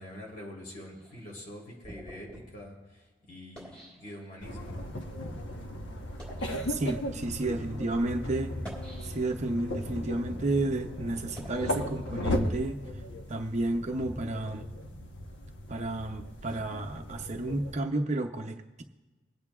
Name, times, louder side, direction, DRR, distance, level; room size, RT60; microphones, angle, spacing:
voice 1, 0.0-4.9, left 1 dB, 50° left, -3 dB, 3.3 m, -45 dB
sound 1, 0.9-4.7 5.4-5.5 6.0-6.6 7.3-7.5 8.4-9.5 10.0-12.6, equal, 5° left, 4.1 m, -50 dB
sound 2, 4.4-17.7, left 1 dB, 80° left, 1.0 m, -37 dB
voice 2, 6.7-8.6 9.0-12.8 13.3-14.7 15.7-18.8, right 2 dB, 40° right, 5 dB, 0.6 m, -31 dB
26.0 x 8.7 x 2.4 m, 1.2 s
head